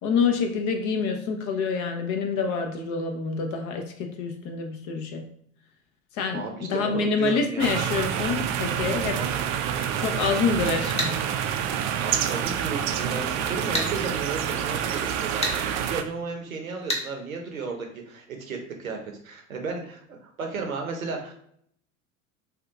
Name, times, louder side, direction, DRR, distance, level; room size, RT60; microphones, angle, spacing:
voice 1, 0.0-5.3 6.1-9.2 10.0-11.2, left 5 dB, 45° left, 4 dB, 0.7 m, -27 dB
voice 2, 6.3-7.7 9.1-9.3 12.0-21.3, right 4 dB, 85° right, 2 dB, 0.8 m, -34 dB
sound 1, 7.6-16.0, right 9 dB, 50° right, 0.4 m, -27 dB
sound 2, 11.0-11.1 13.7-13.9 15.4-15.6 16.9-17.1, left 1 dB, 15° left, 0.9 m, -26 dB
2.7 x 2.4 x 3.5 m, 0.66 s
figure-of-eight pair, 75°, 40 cm